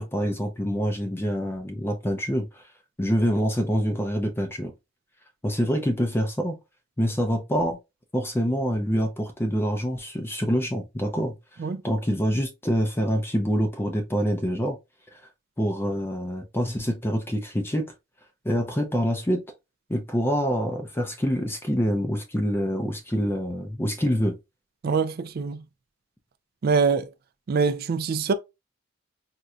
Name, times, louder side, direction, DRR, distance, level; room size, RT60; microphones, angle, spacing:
voice 1, 0.0-2.6 3.0-4.7 5.4-6.6 7.0-7.8 8.1-11.4 11.8-14.8 15.6-17.9 18.4-19.4 19.9-24.4, equal, 10° left, 0.5 m, -26 dB
voice 2, 24.8-25.6 26.6-27.1 27.5-28.3, right 5 dB, 50° right, 0.4 m, -24 dB
4.2 x 2.6 x 2.3 m
head